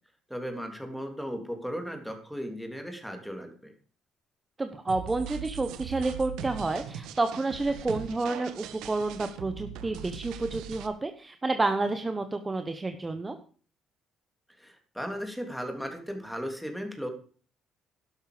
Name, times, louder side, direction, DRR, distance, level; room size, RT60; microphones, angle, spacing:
voice 1, 0.3-3.7 14.6-17.1, equal, ahead, 5 dB, 3.2 m, -36 dB
voice 2, 4.6-13.4, right 3 dB, 20° right, 8 dB, 1.2 m, -30 dB
sound 1, 4.9-10.9, right 9 dB, 90° right, 1.6 m, -40 dB
12.0 x 11.5 x 5.1 m, 0.42 s
cardioid pair, 110°, 0 cm